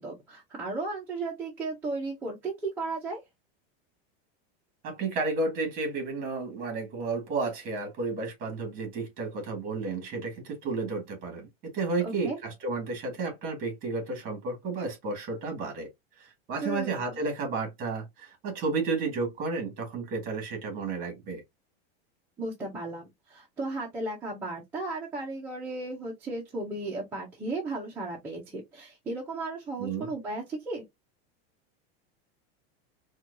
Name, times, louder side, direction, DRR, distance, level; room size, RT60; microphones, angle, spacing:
voice 1, 0.0-3.2 12.0-12.4 16.6-17.1 22.4-30.8, right 2 dB, 5° right, 0.4 m, -35 dB
voice 2, 4.8-15.9 16.2-21.4 29.8-30.1, right 3 dB, 25° right, 1.4 m, -32 dB
4.2 x 2.3 x 2.5 m
supercardioid pair, 175°, 31 cm